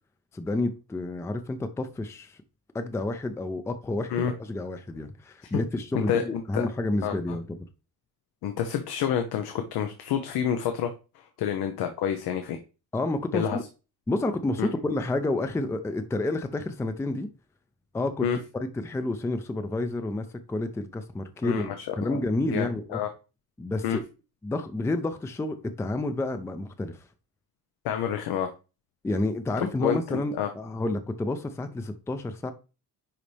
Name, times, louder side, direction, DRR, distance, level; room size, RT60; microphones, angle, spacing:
voice 1, 0.3-2.4 2.7-7.6 12.9-13.6 14.1-17.3 17.9-18.3 18.5-23.0 23.6-24.0 24.4-27.0 29.0-32.5, left 2 dB, 10° left, 0.4 m, -30 dB
voice 2, 6.1-6.7 7.0-7.1 8.4-10.9 11.4-12.6 13.3-13.6 14.6-14.7 18.2-18.4 21.4-21.9 22.5-23.1 23.8-24.0 27.8-28.5 29.6-30.5, left 9 dB, 90° left, 1.0 m, -28 dB
10.0 x 4.2 x 3.3 m
cardioid pair, 155°, 37 cm